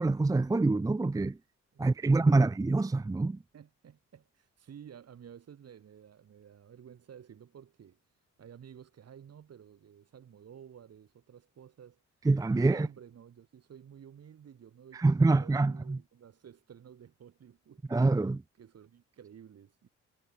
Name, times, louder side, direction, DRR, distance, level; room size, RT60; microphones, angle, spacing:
voice 1, 0.0-1.4 1.8-3.4 12.3-12.9 15.0-16.0 17.9-18.4, right 3 dB, 10° right, 0.6 m, -25 dB
voice 2, 1.7-2.5 3.5-8.0 8.4-12.0 12.5-17.9 18.6-19.9, right 8 dB, 55° right, 4.5 m, -53 dB
cardioid pair, 90°, 30 cm